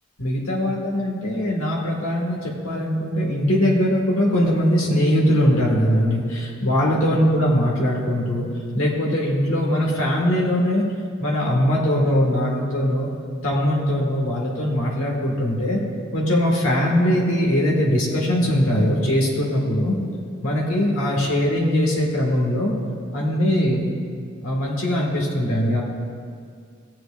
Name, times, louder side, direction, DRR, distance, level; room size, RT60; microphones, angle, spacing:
voice 1, 0.2-2.4 2.6-8.5 8.8-10.8 11.2-13.1 13.4-15.8 16.1-20.0 20.4-22.7 23.1-23.9 24.4-25.8, equal, 75° left, -3 dB, 1.8 m, -21 dB
17.5 x 7.9 x 2.5 m, 2.1 s
head